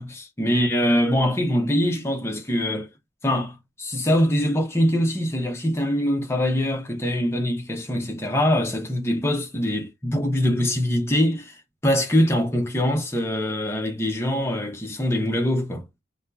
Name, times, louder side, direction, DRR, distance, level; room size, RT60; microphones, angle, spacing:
voice 1, 0.0-2.9 3.2-15.8, equal, 15° left, 0.7 m, -23 dB
2.6 x 2.3 x 3.4 m
head